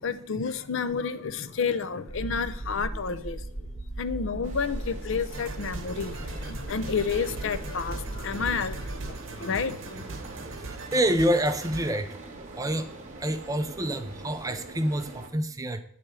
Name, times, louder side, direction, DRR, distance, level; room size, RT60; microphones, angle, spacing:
voice 1, 0.0-3.7 4.0-10.0, left 5 dB, 60° left, 12 dB, 0.5 m, -30 dB
sound 1, 2.1-9.1, right 1 dB, 90° left, 1.8 m, -38 dB
sound 2, 4.4-15.3, right 2 dB, 35° right, 1.1 m, -44 dB
sound 3, 5.3-11.9, right 3 dB, 65° right, 0.9 m, -40 dB
voice 2, 10.9-12.1 12.6-12.8 13.2-15.8, right 1 dB, 15° right, 8 dB, 0.4 m, -27 dB
8.7 x 3.4 x 6.1 m, 0.70 s
head